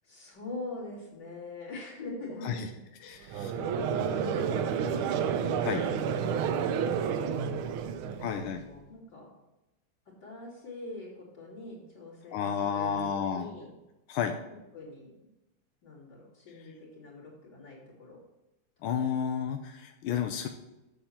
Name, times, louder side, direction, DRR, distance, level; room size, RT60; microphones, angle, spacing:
voice 1, 0.0-2.7 3.0-7.7 8.0-9.3 10.1-13.7 14.7-15.1 15.8-18.2 18.9-19.0 19.3-19.4, left 2 dB, 50° left, -5 dB, 3.7 m, -44 dB
voice 2, 3.0-3.5 5.6-5.8 8.2-8.6 12.3-13.5 14.1-14.4 16.5-16.7 18.8-20.5, left 7 dB, 90° left, 5 dB, 1.5 m, -31 dB
Conversation / Crowd, 3.3-8.6, right 7 dB, 85° right, 1.5 m, -30 dB
8.7 x 7.3 x 4.3 m, 0.97 s
omnidirectional pair, 2.3 m